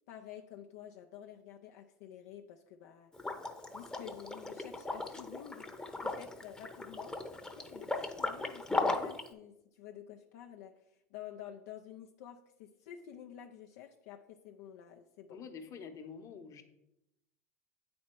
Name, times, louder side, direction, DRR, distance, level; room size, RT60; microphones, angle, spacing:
voice 1, 0.1-3.1 3.7-5.7 6.0-7.2 7.6-15.4, left 10 dB, 70° left, 3 dB, 0.5 m, -50 dB
Liquid, 3.1-9.3, left 2 dB, 10° left, 0.8 m, -37 dB
voice 2, 15.3-16.6, left 6 dB, 40° left, 6 dB, 1.0 m, -47 dB
8.3 x 4.3 x 4.4 m, 0.86 s
hypercardioid pair, 85°, 8 cm